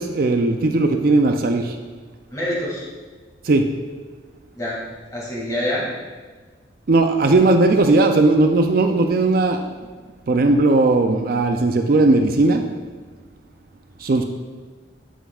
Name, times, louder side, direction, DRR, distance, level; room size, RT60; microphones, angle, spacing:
voice 1, 0.0-1.8 3.4-3.7 6.9-9.7 10.3-12.6 14.0-14.2, right 2 dB, 55° right, 5 dB, 0.4 m, -17 dB
voice 2, 2.3-2.9 4.5-4.8 5.1-5.8, left 1 dB, 20° left, -5 dB, 2.1 m, -25 dB
8.1 x 7.7 x 2.4 m, 1.4 s
head